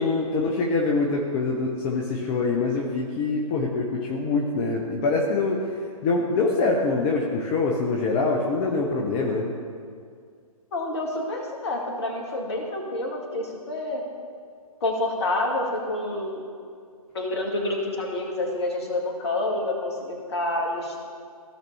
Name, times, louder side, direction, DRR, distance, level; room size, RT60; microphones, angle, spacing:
voice 1, 0.0-5.6 6.0-9.5, left 3 dB, 20° left, -1 dB, 0.7 m, -24 dB
voice 2, 10.7-14.0 14.8-16.4 17.1-21.0, left 2 dB, 45° left, 0 dB, 1.9 m, -28 dB
16.0 x 5.9 x 3.3 m, 2.2 s
figure-of-eight pair, 130°, 19 cm